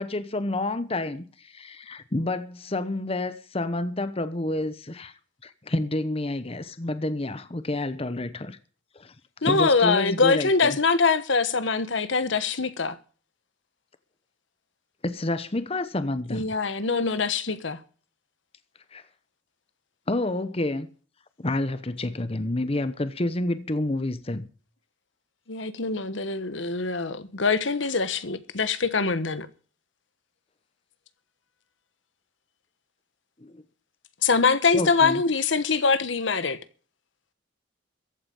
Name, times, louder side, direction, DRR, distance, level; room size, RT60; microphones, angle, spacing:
voice 1, 0.0-5.1 5.4-8.6 9.0-9.1 9.5-10.8 15.0-16.5 18.9-19.0 20.1-20.9 21.4-24.5 33.4-33.6 34.7-35.2, left 2 dB, 30° left, 0.9 m, -29 dB
voice 2, 9.4-13.0 16.3-17.8 25.5-29.5 34.2-36.6, left 4 dB, 70° left, 1.2 m, -23 dB
15.0 x 8.9 x 7.1 m
head